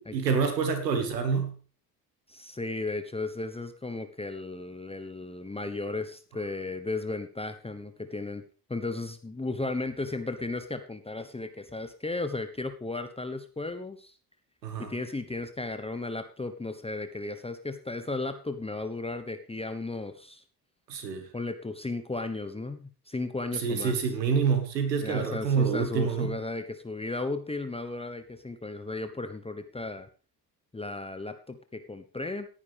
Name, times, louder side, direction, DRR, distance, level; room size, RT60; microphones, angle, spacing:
voice 1, 0.1-1.5 14.6-14.9 20.9-21.2 23.5-26.3, right 6 dB, 85° right, 7 dB, 2.1 m, -27 dB
voice 2, 2.3-8.4 8.7-14.1 14.8-20.4 21.3-23.9 25.0-30.1 30.7-32.5, left 2 dB, 10° left, 9 dB, 1.2 m, -35 dB
17.5 x 9.9 x 3.5 m, 0.38 s
hypercardioid pair, 50°, 48 cm